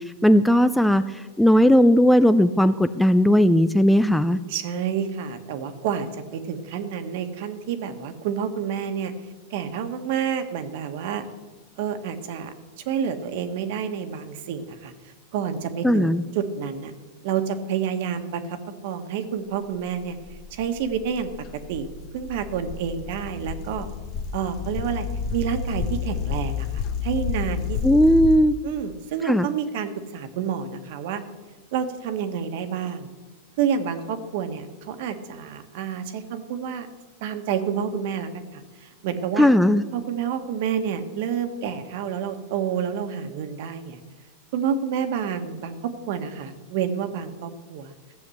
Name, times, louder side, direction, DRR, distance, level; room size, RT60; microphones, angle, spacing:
voice 1, 0.2-4.4 15.8-16.2 27.8-28.5 29.3-29.5 39.4-39.8, equal, ahead, 12 dB, 0.3 m, -17 dB
voice 2, 4.5-9.1 9.5-11.2 11.8-12.5 12.8-16.9 17.2-20.2 20.5-21.3 21.7-21.9 22.1-23.9 24.3-28.0 28.6-31.2 31.7-33.1 33.6-36.9 37.2-39.5 39.9-44.0 44.5-47.9, right 7 dB, 60° right, 8 dB, 1.4 m, -29 dB
sound 1, 19.9-28.4, left 6 dB, 40° left, 0.7 m, -30 dB
14.5 x 7.1 x 7.9 m, 1.3 s
supercardioid pair, 150°, 0 cm